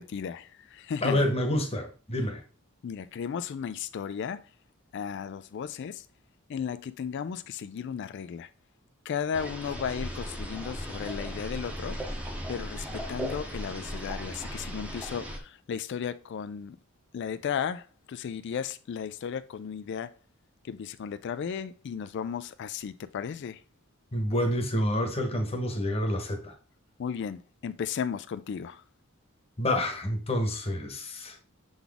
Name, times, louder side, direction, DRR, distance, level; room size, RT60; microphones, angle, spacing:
voice 1, 0.0-1.2 2.8-4.5 4.9-6.1 6.5-8.5 9.0-12.0 12.5-16.8 17.1-20.1 20.6-23.6 27.0-28.8, left 7 dB, 55° left, 0.3 m, -35 dB
voice 2, 1.0-2.4 24.1-26.5 29.6-31.4, left 1 dB, 30° left, 1.1 m, -28 dB
sound 1, 9.3-15.4, equal, 5° right, 0.9 m, -37 dB
7.0 x 4.0 x 3.4 m
head